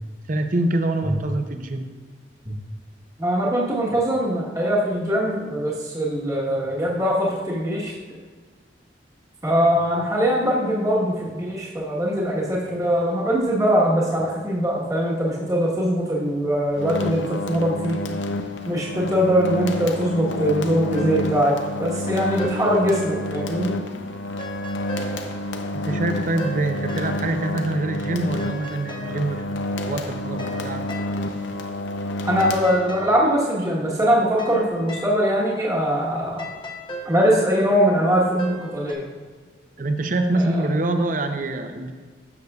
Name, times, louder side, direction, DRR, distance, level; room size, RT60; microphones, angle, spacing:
voice 1, 0.3-1.9 25.7-29.5 29.7-30.8 39.8-41.9, right 2 dB, 45° right, 6 dB, 0.6 m, -25 dB
voice 2, 3.2-7.9 9.4-18.0 18.7-23.7 32.2-36.4 37.0-39.1 40.4-40.6, equal, 20° right, -5 dB, 1.2 m, -22 dB
sound 1, 16.7-33.2, left 1 dB, 80° left, 0.6 m, -29 dB
sound 2, 20.9-23.6 23.9-27.6 27.9-38.9, equal, 25° left, 0.7 m, -40 dB
12.0 x 6.5 x 2.4 m, 1.5 s
head